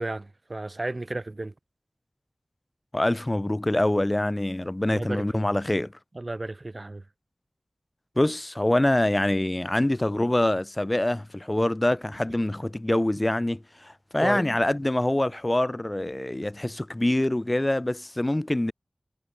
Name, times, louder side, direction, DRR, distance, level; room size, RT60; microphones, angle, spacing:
voice 1, 0.0-1.5 4.9-5.4 6.1-7.0 14.2-14.4, right 2 dB, 40° right, 2.2 m, -33 dB
voice 2, 2.9-5.9 8.2-18.7, left 1 dB, 25° left, 1.2 m, -25 dB
wide cardioid pair, 65°, 0 cm